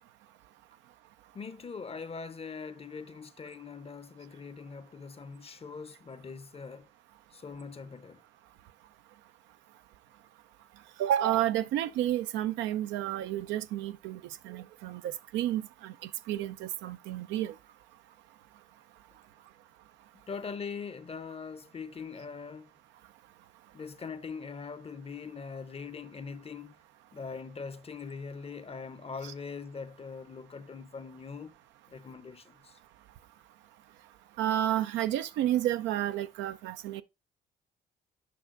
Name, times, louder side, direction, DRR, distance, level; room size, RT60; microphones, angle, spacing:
voice 1, 1.3-6.9 7.3-8.2 20.3-22.7 23.7-26.8 27.1-31.5 31.9-32.8, left 5 dB, 30° left, 0.7 m, -42 dB
voice 2, 11.0-17.5 34.4-37.0, right 12 dB, 70° right, 0.5 m, -31 dB
8.5 x 5.6 x 2.5 m
hypercardioid pair, 55°, 20 cm